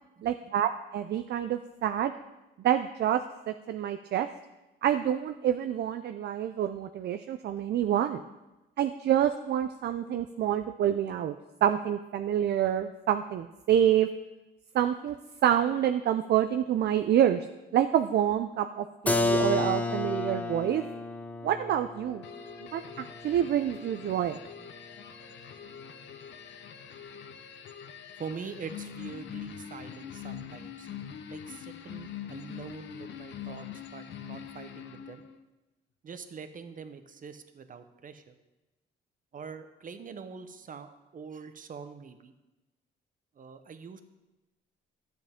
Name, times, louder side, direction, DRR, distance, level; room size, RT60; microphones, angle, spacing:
voice 1, 0.2-2.1 2.6-3.2 3.5-4.3 4.8-8.2 8.8-11.4 11.6-14.1 14.7-15.1 15.4-17.5 17.7-20.8 21.4-22.2 22.7-24.4, right 10 dB, 60° right, 8 dB, 0.5 m, -27 dB
Keyboard (musical), 19.1-24.7, left 2 dB, 5° left, 0.7 m, -32 dB
sound 1, 22.2-35.4, left 8 dB, 65° left, 0.8 m, -44 dB
voice 2, 28.2-30.9 31.3-35.2 36.0-38.4 39.3-42.3 43.3-44.0, right 6 dB, 45° right, 9 dB, 0.9 m, -44 dB
12.0 x 7.6 x 3.6 m, 1.0 s
cardioid pair, 90°, 20 cm